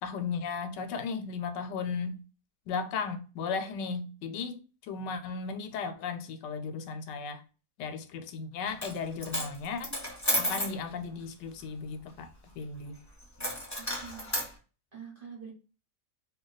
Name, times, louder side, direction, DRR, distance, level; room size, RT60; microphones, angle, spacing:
voice 1, 0.0-2.2 2.7-7.4 7.8-10.0 10.3-12.3 12.6-13.0, left 5 dB, 90° left, 1.2 m, -35 dB
Coin (dropping), 8.7-9.0 9.2-10.8 13.4-14.5, equal, 15° left, 0.7 m, -32 dB
voice 2, 13.8-14.5 14.9-15.5, right 6 dB, 40° right, 0.8 m, -46 dB
2.7 x 2.2 x 3.8 m
omnidirectional pair, 1.8 m